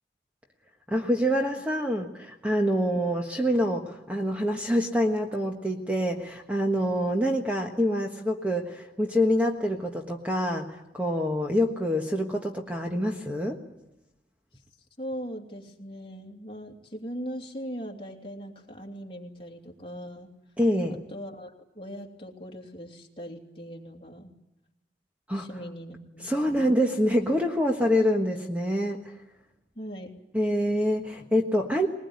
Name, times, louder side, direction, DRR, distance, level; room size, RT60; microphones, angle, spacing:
voice 1, 0.9-13.6 20.6-21.0 25.3-25.5 26.2-29.0 30.3-31.9, equal, 10° right, 3 dB, 1.4 m, -26 dB
voice 2, 15.0-20.3 21.1-24.3 25.3-26.7 29.7-30.1, equal, 30° left, 1 dB, 2.8 m, -40 dB
21.0 x 20.5 x 9.6 m, 0.89 s
head